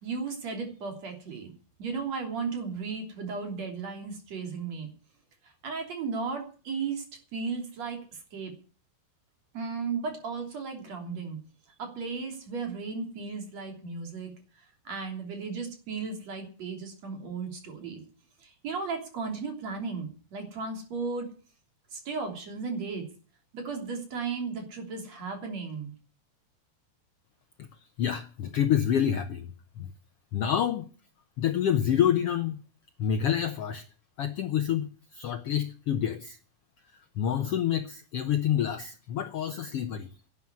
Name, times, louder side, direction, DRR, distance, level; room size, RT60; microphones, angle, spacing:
voice 1, 0.0-1.5 1.8-4.9 5.4-7.0 7.3-8.5 9.5-11.4 11.8-18.0 18.4-21.3 21.9-23.1 23.5-25.9, right 4 dB, 50° right, 4 dB, 4.3 m, -35 dB
voice 2, 28.0-29.5 29.8-29.9 30.3-30.9 31.4-32.6 33.0-33.8 34.2-36.4 37.2-40.1, left 9 dB, 90° left, 10 dB, 1.3 m, -27 dB
12.0 x 10.0 x 9.5 m, 0.40 s
omnidirectional pair, 3.9 m